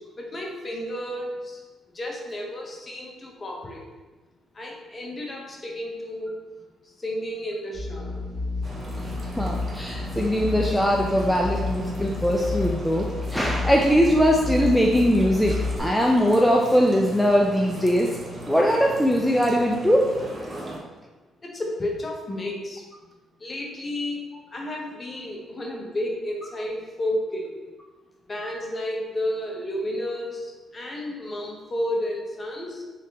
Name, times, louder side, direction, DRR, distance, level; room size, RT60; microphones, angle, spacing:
voice 1, 0.0-1.6 1.9-3.9 4.5-6.4 7.0-8.2 21.4-22.8 23.4-24.2 24.5-27.5 28.3-32.8, left 1 dB, 30° left, -1 dB, 0.8 m, -32 dB
sound 1, 7.7-15.8, left 3 dB, 70° right, 0.9 m, -31 dB
sound 2, 8.6-20.8, right 1 dB, 30° right, 0.7 m, -38 dB
voice 2, 9.4-15.5 15.8-18.1 18.5-20.1, equal, ahead, -1 dB, 0.4 m, -21 dB
3.3 x 3.2 x 2.9 m, 1.2 s
cardioid pair, 90°, 0 cm